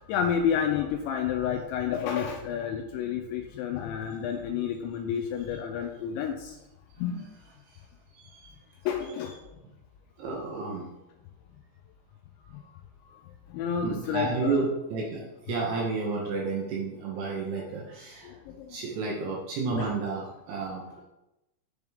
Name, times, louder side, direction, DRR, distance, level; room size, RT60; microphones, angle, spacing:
voice 1, 0.1-6.5 7.0-7.3 8.9-9.3 13.5-14.6 18.3-18.7 19.7-19.9, left 8 dB, 85° left, 3 dB, 2.6 m, -30 dB
voice 2, 10.2-10.9 13.8-18.3 18.7-21.0, right 4 dB, 75° right, -2 dB, 2.6 m, -31 dB
10.5 x 3.6 x 3.4 m, 0.95 s
omnidirectional pair, 5.6 m